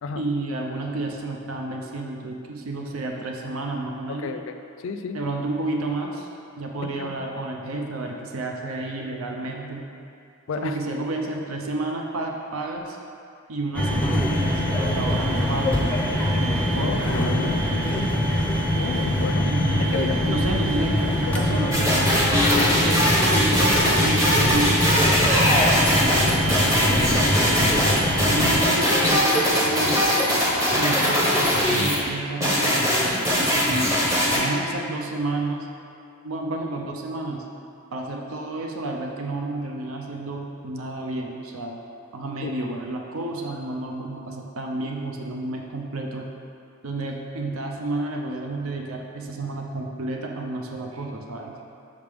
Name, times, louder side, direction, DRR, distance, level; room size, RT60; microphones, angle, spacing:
voice 1, 0.2-4.4 5.1-6.3 6.6-9.9 10.6-13.0 13.5-15.9 16.3-17.5 19.4-22.2 22.6-27.9 28.2-30.1 30.8-34.0 34.3-35.7 36.2-37.5 37.9-41.8 42.1-46.3 46.8-51.5, right 2 dB, 70° right, 1 dB, 0.6 m, -31 dB
voice 2, 4.1-5.2 7.0-7.1 10.5-10.8 16.8-18.1 18.7-19.4 19.9-20.2 21.2-21.3 42.4-42.5, left 4 dB, 60° left, 7 dB, 0.3 m, -32 dB
sound 1, 13.7-28.6, left 1 dB, 5° left, 0.5 m, -23 dB
sound 2, 21.7-32.0 32.4-34.4, equal, 15° right, 0.9 m, -21 dB
6.6 x 4.9 x 3.5 m, 2.5 s
head